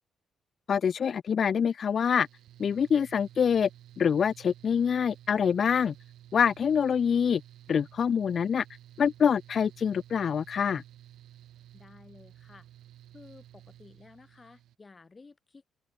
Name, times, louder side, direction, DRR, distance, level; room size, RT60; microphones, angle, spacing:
voice 1, 0.7-2.3 2.6-3.7 4.0-5.9 6.3-7.4 7.7-8.6 9.0-10.8, left 7 dB, 50° left, 0.3 m, -25 dB
Mechanical fan, 2.2-14.7, right 12 dB, 80° right, 2.1 m, -53 dB
voice 2, 11.7-12.7 13.1-15.7, left 4 dB, 30° left, 2.0 m, -53 dB
open air
cardioid pair, 90°, 0 cm